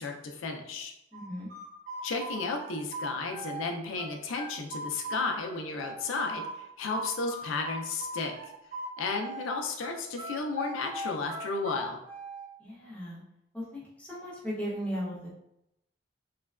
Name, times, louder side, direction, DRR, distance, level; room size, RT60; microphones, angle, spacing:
voice 1, 0.0-0.9 2.0-8.3 9.0-12.0, left 3 dB, 80° left, 3 dB, 0.4 m, -33 dB
voice 2, 1.1-1.5 12.6-13.2 13.5-15.3, equal, 5° left, -6 dB, 0.6 m, -37 dB
sound 1, 1.1-3.7 4.0-6.5 6.9-9.5 9.8-12.4, right 1 dB, 40° right, 0.8 m, -39 dB
3.1 x 2.2 x 2.3 m, 0.82 s
head